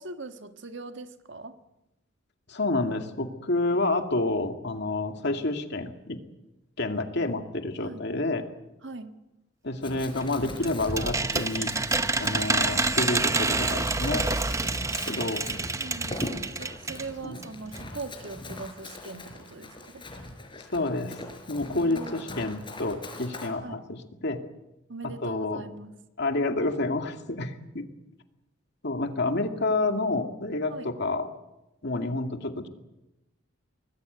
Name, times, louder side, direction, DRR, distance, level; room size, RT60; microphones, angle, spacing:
voice 1, 0.0-1.6 7.8-8.0 8.8-9.1 15.1-15.2 15.8-20.0 21.7-22.2 23.6-23.8 24.9-25.9 30.7-30.9, right 3 dB, 65° right, 8 dB, 1.8 m, -41 dB
voice 2, 2.5-6.2 6.8-8.4 9.6-11.7 12.2-14.8 15.0-15.4 17.2-17.4 20.6-21.2 21.5-24.4 25.2-25.6 26.2-27.8 28.8-31.3 31.8-32.7, left 2 dB, 60° left, 5 dB, 2.4 m, -29 dB
Run, 9.8-23.5, left 1 dB, 25° left, 4.7 m, -41 dB
sound 1, 10.2-17.1 17.4-17.5 17.7-17.8, right 3 dB, 15° right, 0.8 m, -28 dB
24.5 x 20.0 x 8.2 m, 0.94 s
head